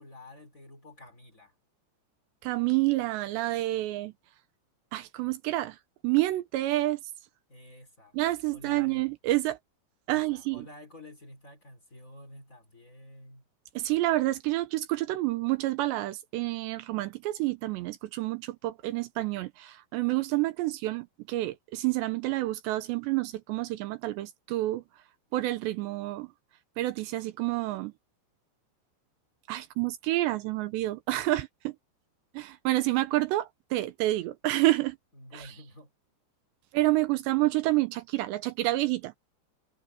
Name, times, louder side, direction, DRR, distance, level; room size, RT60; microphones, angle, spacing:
voice 1, 0.0-1.5 7.5-8.2 8.5-9.1 10.1-13.5 35.1-35.9, left 1 dB, 20° left, 3.3 m, -50 dB
voice 2, 2.4-4.1 4.9-5.8 6.0-7.0 8.1-9.6 10.1-10.7 13.8-24.8 25.3-26.3 26.8-27.9 29.5-31.7 32.3-35.0 35.3-35.5 36.7-39.1, right 17 dB, 80° right, 2.9 m, -28 dB
omnidirectional pair, 5.3 m